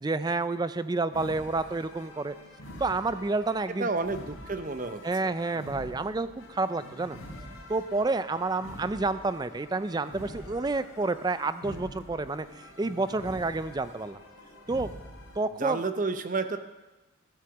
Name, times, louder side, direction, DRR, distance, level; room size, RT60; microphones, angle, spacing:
voice 1, 0.0-2.3 2.8-3.9 5.0-7.2 7.7-14.2 14.7-14.9 15.4-15.8, right 3 dB, 20° right, 13 dB, 0.3 m, -29 dB
sound 1, 1.1-15.4, left 1 dB, 70° left, 3.5 m, -46 dB
voice 2, 3.8-5.3 15.5-16.6, right 3 dB, 40° right, 9 dB, 0.7 m, -31 dB
13.5 x 7.8 x 7.0 m, 1.1 s
head